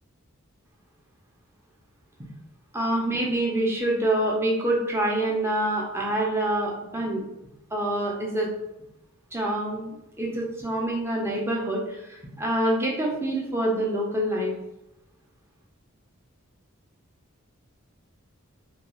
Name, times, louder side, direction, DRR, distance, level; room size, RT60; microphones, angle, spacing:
voice 1, 2.7-7.2 7.7-8.5 9.3-14.5, right 1 dB, 10° right, -2 dB, 0.5 m, -26 dB
2.3 x 2.3 x 3.0 m, 0.91 s
head